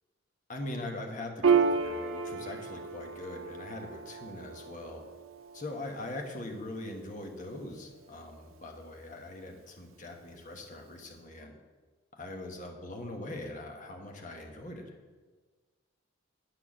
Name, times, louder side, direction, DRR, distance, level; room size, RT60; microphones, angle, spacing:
voice 1, 0.5-5.1 5.5-11.6 12.1-15.0, left 2 dB, 40° left, 2 dB, 1.2 m, -41 dB
Piano, 1.4-8.4, right 5 dB, 85° right, 0.6 m, -32 dB
9.7 x 4.6 x 7.3 m, 1.4 s
head